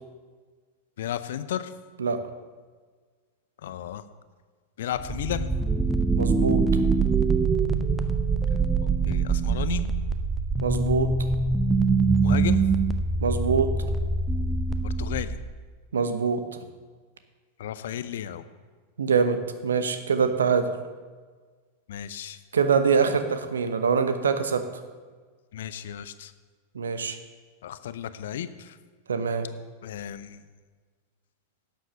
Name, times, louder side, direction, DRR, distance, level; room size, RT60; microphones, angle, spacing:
voice 1, 1.0-1.7 3.6-4.0 4.8-5.5 9.1-9.8 12.2-12.6 14.8-15.4 17.6-18.4 21.9-22.4 25.5-26.3 27.6-28.8 29.8-30.4, left 10 dB, 60° left, 13 dB, 0.6 m, -33 dB
sound 1, 5.0-15.6, right 4 dB, 10° right, 0.7 m, -24 dB
voice 2, 6.2-6.6 10.6-11.1 13.2-13.7 15.9-16.4 19.0-20.8 22.5-24.6 26.7-27.2 29.1-29.5, right 6 dB, 70° right, 10 dB, 0.9 m, -24 dB
11.5 x 7.6 x 6.9 m, 1.5 s
figure-of-eight pair, 90°, 0 cm